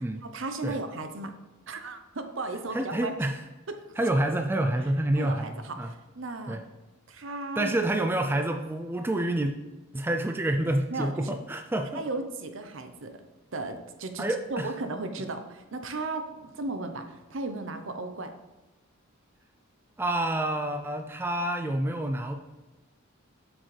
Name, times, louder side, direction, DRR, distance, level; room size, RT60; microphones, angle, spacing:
voice 1, 0.2-1.4 1.7-3.1 3.7-3.8 5.1-6.6 7.1-7.7 10.9-11.4 11.9-13.2 13.5-18.3, right 2 dB, 60° right, 7 dB, 0.8 m, -35 dB
voice 2, 2.7-3.4 4.0-5.9 6.5-6.6 7.6-9.5 9.9-12.0 14.2-14.7 20.0-22.4, right 1 dB, 10° right, 5 dB, 0.3 m, -28 dB
7.8 x 6.2 x 3.3 m, 1.1 s
head